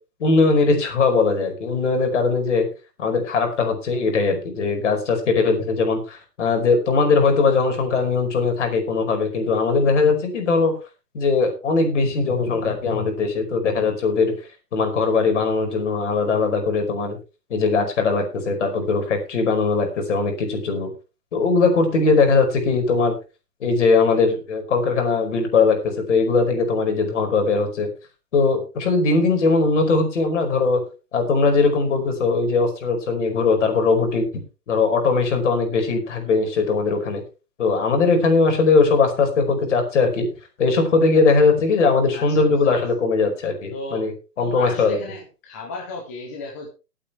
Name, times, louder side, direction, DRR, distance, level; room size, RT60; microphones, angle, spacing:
voice 1, 0.2-2.7 3.0-10.7 11.1-14.3 14.7-17.2 17.5-20.9 21.3-23.1 23.6-27.9 28.3-30.8 31.1-34.3 34.7-37.2 37.6-40.3 40.6-45.0, left 4 dB, 45° left, 4 dB, 5.2 m, -20 dB
voice 2, 42.1-42.9 43.7-44.1 44.4-46.7, left 2 dB, 10° left, 0 dB, 0.8 m, -34 dB
19.5 x 8.8 x 3.3 m, 0.31 s
hypercardioid pair, 165°, 48 cm